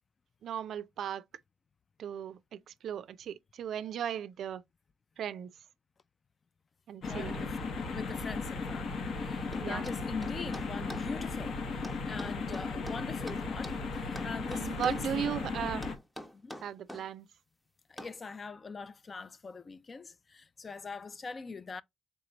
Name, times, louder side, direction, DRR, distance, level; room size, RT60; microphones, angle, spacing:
voice 1, 0.4-1.2 2.0-4.6 5.2-5.5 6.9-7.5 9.6-9.9 14.5-15.8 16.6-17.3, right 9 dB, 70° right, 0.4 m, -36 dB
sound 1, 7.0-15.9, left 4 dB, 65° left, 1.0 m, -36 dB
voice 2, 7.0-7.6 7.8-11.6 12.1-15.3 16.4-16.5 17.9-21.8, left 4 dB, 35° left, 0.3 m, -42 dB
sound 2, 9.5-11.1 11.8-13.8 14.2-15.1 15.8-17.1 18.0-18.2, equal, 5° left, 0.7 m, -45 dB
3.5 x 3.0 x 3.8 m
cardioid pair, 90°, 0 cm